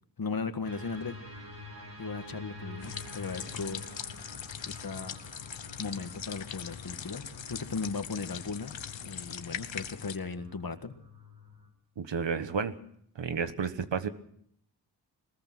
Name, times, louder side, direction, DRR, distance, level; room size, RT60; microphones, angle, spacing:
voice 1, 0.2-1.2 2.0-3.8 4.6-5.2 5.8-11.0, left 4 dB, 50° left, 9 dB, 1.8 m, -37 dB
sound 1, 0.6-11.7, left 2 dB, 55° right, 5.4 m, -48 dB
sound 2, 2.8-10.2, left 8 dB, 90° left, 1.1 m, -41 dB
voice 2, 12.0-12.7 13.1-14.1, right 6 dB, 75° right, 11 dB, 1.4 m, -31 dB
21.5 x 20.5 x 6.2 m, 0.68 s
cardioid pair, 60°, 44 cm